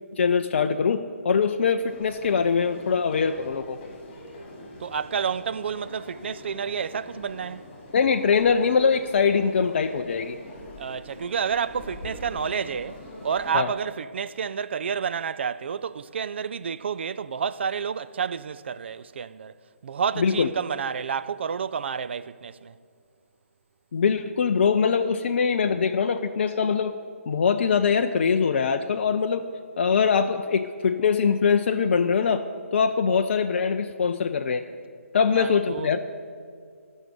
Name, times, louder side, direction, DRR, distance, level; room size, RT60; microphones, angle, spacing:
voice 1, 0.1-3.8 7.9-10.4 13.5-13.7 20.2-20.5 23.9-26.9 27.3-29.4 29.8-34.6 35.1-36.0, left 6 dB, 50° left, 0.5 m, -23 dB
sound 1, 1.8-13.5, left 1 dB, 30° left, 3.8 m, -44 dB
voice 2, 4.8-7.6 10.8-19.6 19.8-22.7 35.4-35.9, right 7 dB, 50° right, 0.4 m, -30 dB
14.0 x 6.4 x 9.6 m
figure-of-eight pair, 140°, 8 cm